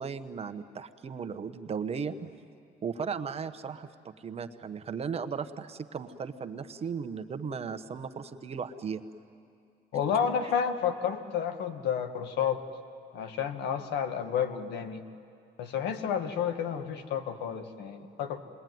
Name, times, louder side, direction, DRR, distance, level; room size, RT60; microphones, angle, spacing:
voice 1, 0.0-2.3 2.8-3.9 4.2-9.0 10.4-10.5, right 6 dB, 35° right, 9 dB, 1.1 m, -36 dB
voice 2, 9.9-12.6 13.1-15.0 15.6-18.4, left 8 dB, 80° left, 8 dB, 1.7 m, -30 dB
27.0 x 21.0 x 9.4 m, 2.5 s
cardioid pair, 110°, 17 cm